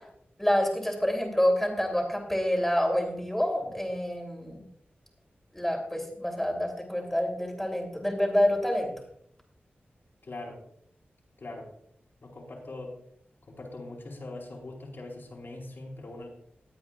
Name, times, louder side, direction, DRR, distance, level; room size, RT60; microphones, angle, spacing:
voice 1, 0.4-4.6 5.5-8.9, equal, 5° left, 1 dB, 3.2 m, -27 dB
voice 2, 10.2-10.6 11.4-11.7 12.2-13.0 13.5-16.3, left 2 dB, 65° left, -3 dB, 4.2 m, -41 dB
20.0 x 8.8 x 2.5 m, 0.69 s
wide cardioid pair, 75°, 4 cm